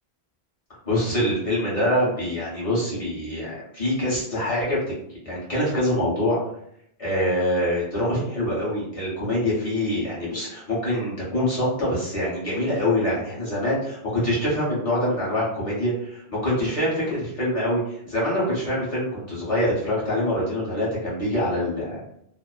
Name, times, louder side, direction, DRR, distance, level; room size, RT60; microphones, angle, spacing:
voice 1, 0.8-4.8 5.2-6.4 7.0-22.0, left 1 dB, 30° left, -8 dB, 1.2 m, -25 dB
2.8 x 2.0 x 2.4 m, 0.73 s
omnidirectional pair, 1.1 m